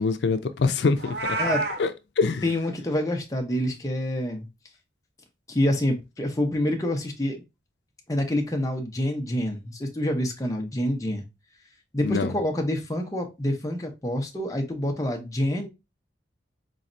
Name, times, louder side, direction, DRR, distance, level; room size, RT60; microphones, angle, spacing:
voice 1, 0.0-1.4 1.8-2.4 12.0-12.3, left 4 dB, 80° left, 0.4 m, -25 dB
Meow, 1.0-1.8, right 2 dB, 70° right, 1.0 m, -27 dB
voice 2, 2.4-4.5 5.5-7.4 8.1-11.2 11.9-15.7, left 1 dB, 20° left, 0.7 m, -27 dB
4.0 x 3.1 x 2.6 m
head